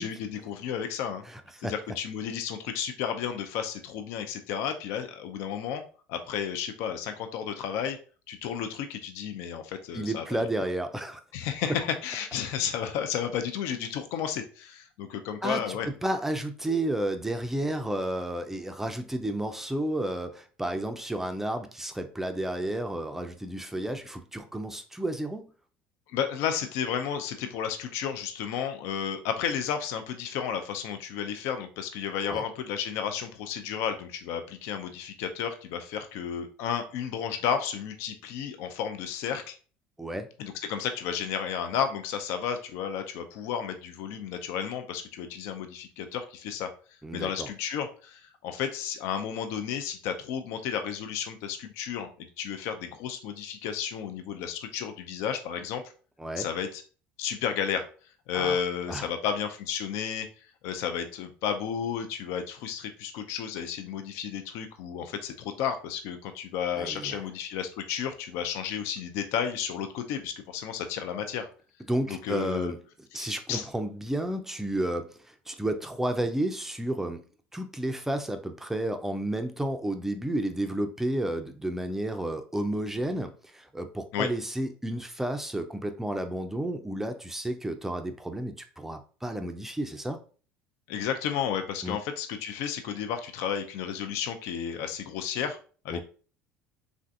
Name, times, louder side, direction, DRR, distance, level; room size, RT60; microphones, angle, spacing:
voice 1, 0.0-1.2 1.6-5.8 6.1-8.0 8.3-10.2 11.3-15.9 26.1-39.5 40.4-46.7 47.1-55.8 56.4-56.8 57.2-57.9 58.3-71.5 72.1-72.7 73.1-73.7 84.1-84.3 90.9-95.6 95.8-96.0, left 8 dB, 70° left, 7 dB, 0.4 m, -32 dB
voice 2, 1.3-1.7 9.9-11.2 15.4-25.5 32.3-32.4 40.0-40.3 47.0-47.5 56.2-56.5 58.3-58.6 58.9-59.1 66.7-67.2 71.9-72.8 73.1-77.2 77.5-90.2 91.8-92.0 95.9-96.0, right 1 dB, 5° right, 6 dB, 0.4 m, -31 dB
3.3 x 2.5 x 2.4 m, 0.39 s
supercardioid pair, 95°, 5 cm